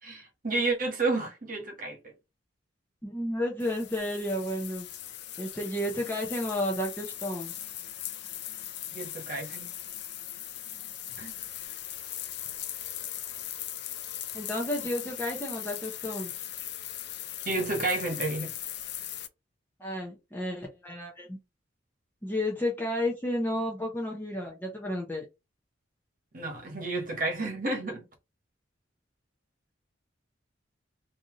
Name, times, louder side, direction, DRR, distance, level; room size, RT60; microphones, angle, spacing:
voice 1, 0.0-2.0 8.9-9.7 11.2-11.3 17.4-18.5 26.3-28.0, right 2 dB, 45° right, 1.2 m, -31 dB
voice 2, 3.0-4.9 5.4-7.5 14.3-16.3 19.8-21.4 22.2-25.2, left 1 dB, 10° left, 0.7 m, -32 dB
sound 1, 3.6-19.3, left 12 dB, 60° left, 0.5 m, -39 dB
3.3 x 2.7 x 3.7 m
head